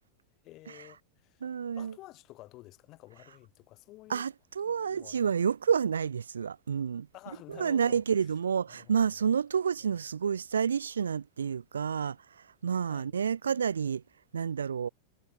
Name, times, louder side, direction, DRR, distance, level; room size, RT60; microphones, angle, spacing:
voice 1, 0.4-1.4 1.8-4.3 4.7-5.3 7.1-8.0 8.7-8.9 9.8-10.0 12.8-13.2, left 18 dB, 40° left, 5.6 m, -51 dB
voice 2, 1.4-1.9 4.1-7.1 7.5-12.2 12.6-14.0 14.3-14.9, right 7 dB, 70° right, 0.5 m, -29 dB
figure-of-eight pair, 90°, 0 cm